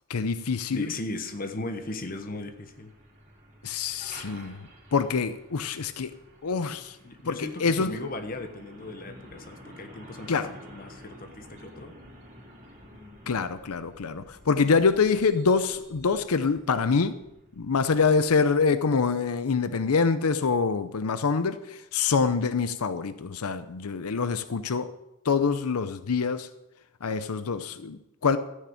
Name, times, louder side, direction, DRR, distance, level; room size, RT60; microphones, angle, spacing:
voice 1, 0.1-0.9 3.6-4.6 4.9-6.1 6.4-6.9 7.3-7.9 10.3-10.5 13.3-17.2 17.6-24.9 25.3-26.5 27.0-28.4, left 5 dB, 90° left, 0.6 m, -25 dB
voice 2, 0.7-2.9 7.0-10.3 10.7-11.9, left 2 dB, 40° left, 1.2 m, -37 dB
Truck, 1.2-18.8, equal, 30° right, 3.3 m, -51 dB
13.5 x 6.5 x 8.8 m
head